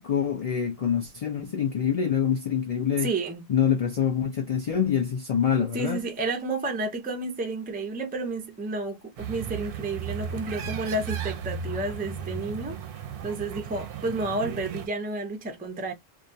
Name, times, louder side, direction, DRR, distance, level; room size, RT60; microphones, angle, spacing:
voice 1, 0.0-3.1 3.5-6.0, left 8 dB, 55° left, 0.4 m, -25 dB
voice 2, 3.0-3.5 5.7-12.8 13.2-15.9, right 2 dB, 15° right, 0.3 m, -31 dB
sound 1, 9.2-14.9, right 7 dB, 65° right, 0.7 m, -35 dB
2.4 x 2.2 x 2.5 m
omnidirectional pair, 1.1 m